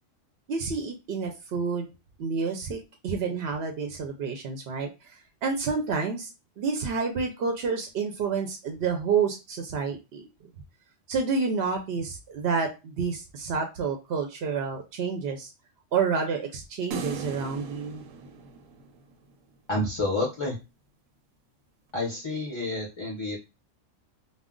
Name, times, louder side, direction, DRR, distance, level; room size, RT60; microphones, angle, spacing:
voice 1, 0.5-1.9 2.2-5.1 5.4-6.3 6.6-10.2 11.1-15.5 15.9-18.0, right 5 dB, 65° right, 4 dB, 0.7 m, -29 dB
sound 1, 16.9-19.3, right 5 dB, 90° right, 1.0 m, -38 dB
voice 2, 19.7-20.6 21.9-23.4, left 2 dB, 40° left, -3 dB, 0.4 m, -29 dB
2.4 x 2.1 x 3.6 m, 0.27 s
omnidirectional pair, 1.3 m